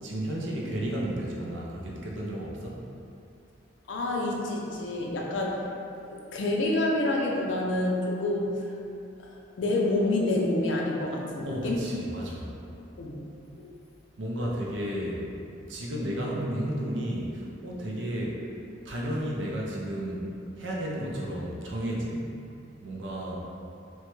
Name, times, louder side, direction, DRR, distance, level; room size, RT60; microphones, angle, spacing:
voice 1, 0.0-2.8 11.5-12.5 14.2-15.3 15.7-18.5 18.8-20.3 20.6-22.2 22.8-23.4, right 1 dB, 85° right, -3 dB, 0.5 m, -32 dB
voice 2, 3.9-5.7 6.1-8.5 9.6-11.9 13.0-13.2 13.6-13.7 23.3-23.4, left 2 dB, 80° left, -1 dB, 0.4 m, -28 dB
3.0 x 2.2 x 3.1 m, 2.6 s
head